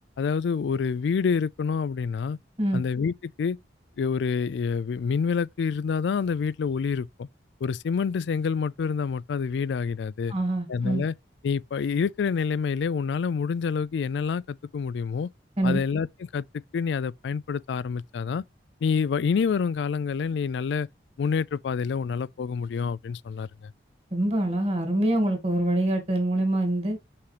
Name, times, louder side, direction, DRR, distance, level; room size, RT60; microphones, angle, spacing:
voice 1, 0.2-2.4 2.7-3.6 4.0-7.3 7.6-10.3 10.7-11.1 11.4-15.3 15.6-16.4 16.7-18.4 18.8-20.9 21.2-23.7, left 5 dB, 80° left, 0.3 m, -27 dB
voice 2, 10.3-11.0 15.6-15.8 24.1-27.0, right 1 dB, 35° right, 2.2 m, -25 dB
6.4 x 5.8 x 3.3 m
head